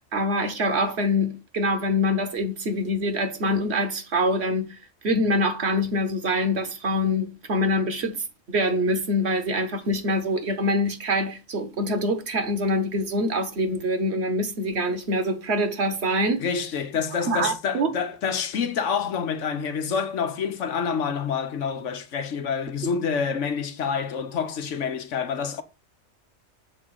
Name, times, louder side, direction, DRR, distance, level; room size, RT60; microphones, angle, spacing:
voice 1, 0.1-4.8 5.0-8.2 8.5-16.5 17.2-17.9, equal, 55° right, 1.3 m, -25 dB
voice 2, 16.4-25.6, left 6 dB, 70° left, 1.2 m, -27 dB
7.2 x 3.7 x 6.1 m
omnidirectional pair, 1.3 m